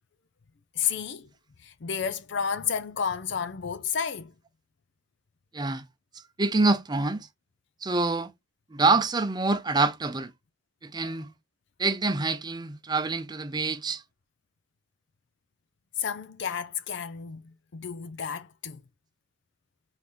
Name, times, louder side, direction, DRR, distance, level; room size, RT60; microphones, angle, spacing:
voice 1, 0.8-1.3 1.6-4.3 16.0-17.4 17.7-18.8, left 7 dB, 60° left, 0.5 m, -31 dB
voice 2, 6.4-7.3 7.8-8.3 8.7-10.3 10.8-11.3 11.8-14.0, right 3 dB, 20° right, 0.6 m, -26 dB
4.0 x 3.8 x 3.0 m
head